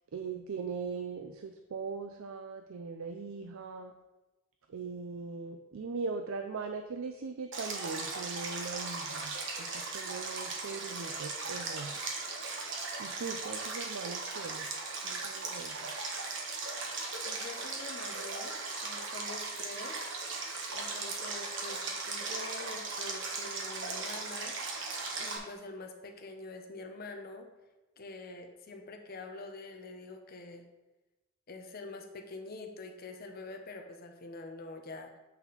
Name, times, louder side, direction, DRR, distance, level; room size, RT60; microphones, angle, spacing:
voice 1, 0.1-3.9 4.7-9.3 9.6-11.9 13.0-14.7 15.0-15.9, right 4 dB, 75° right, 6 dB, 0.4 m, -40 dB
Stream, 7.5-25.4, right 3 dB, 60° right, 1.2 m, -38 dB
voice 2, 17.2-20.0 20.7-24.5 25.2-27.5 28.0-30.7 31.5-35.2, left 3 dB, 45° left, 4 dB, 0.8 m, -45 dB
8.1 x 4.2 x 4.0 m, 1.1 s
head